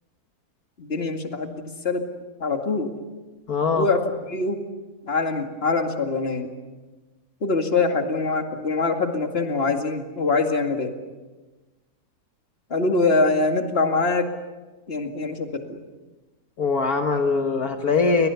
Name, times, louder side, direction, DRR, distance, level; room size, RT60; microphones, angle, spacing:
voice 1, 0.8-2.1 2.4-2.9 3.8-4.6 5.0-6.5 7.4-10.9 12.7-14.3 14.9-15.8, left 3 dB, 40° left, 4 dB, 2.4 m, -24 dB
voice 2, 3.5-3.9 16.6-18.3, left 4 dB, 65° left, 5 dB, 2.0 m, -22 dB
30.0 x 23.5 x 7.0 m, 1.2 s
omnidirectional pair, 1.7 m